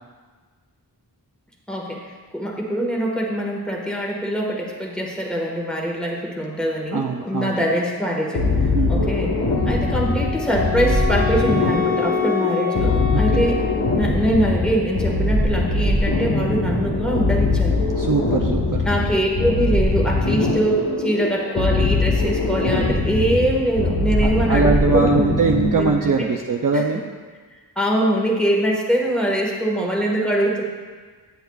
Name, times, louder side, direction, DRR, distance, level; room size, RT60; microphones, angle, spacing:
voice 1, 1.7-2.0 2.3-8.5 8.9-9.3 9.6-13.6 13.9-17.8 18.8-26.3 26.7-26.8 27.7-30.6, equal, ahead, -2 dB, 1.4 m, -23 dB
voice 2, 6.9-7.6 8.7-9.1 13.1-13.5 18.0-18.6 24.2-27.0, right 4 dB, 50° right, 1 dB, 0.5 m, -22 dB
sound 1, 8.3-26.0, left 2 dB, 80° left, 1.1 m, -22 dB
Wind instrument woodwind instrument, 9.5-14.3, left 8 dB, 50° left, 1.7 m, -27 dB
9.2 x 7.9 x 2.3 m, 1.5 s
wide cardioid pair, 55°, 42 cm